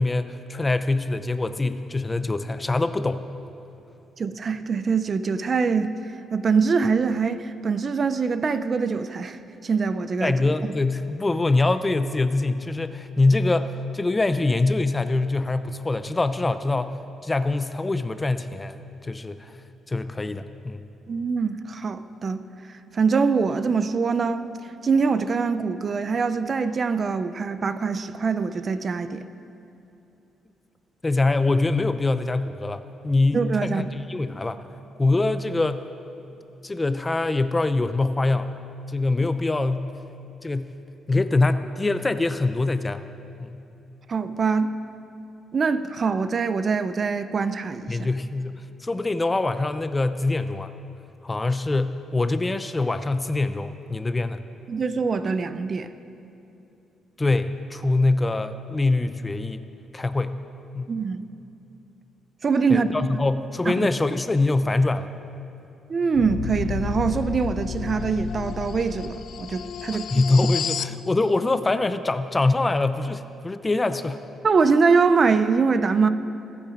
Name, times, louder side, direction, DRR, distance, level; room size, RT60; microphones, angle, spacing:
voice 1, 0.0-3.2 10.2-17.0 17.2-19.5 19.9-20.8 31.0-34.6 35.0-35.8 36.6-38.6 38.9-39.9 40.4-40.8 41.1-43.0 43.4-43.6 47.9-50.7 51.2-54.4 57.2-59.6 59.9-60.4 60.7-60.9 62.7-65.1 69.9-74.2, left 2 dB, 20° left, 11 dB, 0.6 m, -24 dB
voice 2, 4.2-5.9 6.3-10.4 10.6-10.7 21.1-24.5 24.8-29.3 33.3-33.9 44.1-44.7 45.5-48.1 54.7-55.9 60.9-61.3 62.4-63.2 63.7-63.9 65.9-70.2 74.4-76.1, right 5 dB, 40° right, 12 dB, 0.6 m, -24 dB
sound 1, 66.1-71.0, left 8 dB, 70° left, 0.4 m, -31 dB
23.5 x 8.5 x 5.0 m, 2.8 s
cardioid pair, 90°, 0 cm